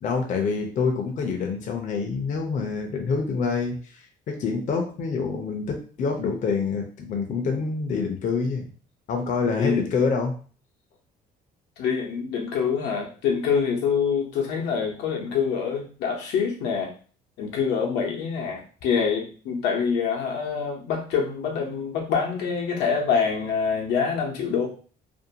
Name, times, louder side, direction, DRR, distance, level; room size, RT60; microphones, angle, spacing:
voice 1, 0.0-8.7 9.1-10.3, left 5 dB, 50° left, 3 dB, 0.6 m, -26 dB
voice 2, 11.8-16.9 17.4-24.7, left 6 dB, 85° left, 0 dB, 0.8 m, -25 dB
2.6 x 2.2 x 2.7 m, 0.40 s
cardioid pair, 110°, 17 cm